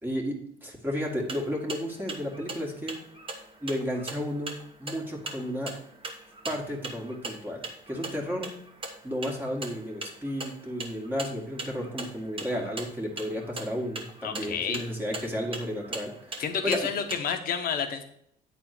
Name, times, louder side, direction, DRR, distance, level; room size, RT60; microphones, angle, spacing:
voice 1, 0.0-3.0 3.6-5.7 6.5-8.5 9.0-16.8, equal, 10° right, -1 dB, 1.9 m, -33 dB
sound 1, 1.0-17.2, right 3 dB, 30° right, 1.5 m, -41 dB
voice 2, 14.2-14.8 16.4-18.0, left 7 dB, 60° left, 6 dB, 1.3 m, -30 dB
9.1 x 4.2 x 6.0 m, 0.70 s
cardioid pair, 110°, 17 cm